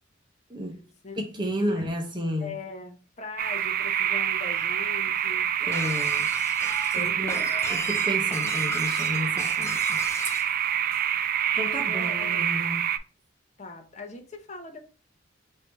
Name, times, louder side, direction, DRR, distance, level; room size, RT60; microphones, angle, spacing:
voice 1, 1.2-2.5 5.6-6.3 7.0-7.4 7.7-10.0 11.5-12.8, equal, 25° right, 0.8 m, -32 dB
voice 2, 2.4-5.5 6.9-7.5 11.6-12.4 13.6-14.8, left 3 dB, 35° left, 0.8 m, -40 dB
sound 1, 3.4-13.0, right 10 dB, 50° right, 0.3 m, -26 dB
Shatter, 5.7-10.5, left 3 dB, 15° left, 0.4 m, -37 dB
3.4 x 2.7 x 4.4 m
head